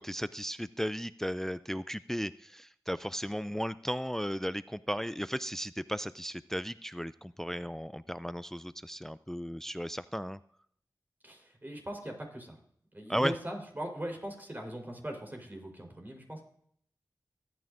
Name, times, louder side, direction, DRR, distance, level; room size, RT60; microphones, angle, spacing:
voice 1, 0.0-10.4 13.1-13.3, equal, 5° left, 15 dB, 0.4 m, -35 dB
voice 2, 11.2-12.6 12.9-16.4, right 1 dB, 25° right, 2 dB, 4.0 m, -40 dB
24.0 x 9.3 x 2.6 m, 0.66 s
cardioid pair, 45°, 7 cm